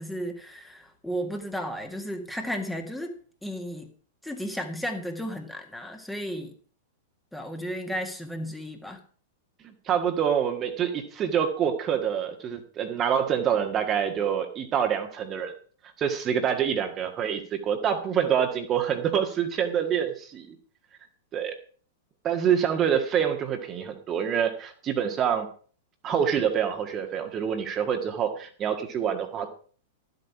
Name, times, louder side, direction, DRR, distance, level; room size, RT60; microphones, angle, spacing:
voice 1, 0.0-3.1 3.4-3.9 4.2-6.5 7.3-9.0, equal, 5° left, 3 dB, 1.9 m, -34 dB
voice 2, 9.9-15.5 16.0-20.6 21.3-21.6 22.2-25.5 26.0-29.5, right 8 dB, 25° right, 5 dB, 1.7 m, -26 dB
13.0 x 8.3 x 5.9 m, 0.43 s
figure-of-eight pair, 95°, 0 cm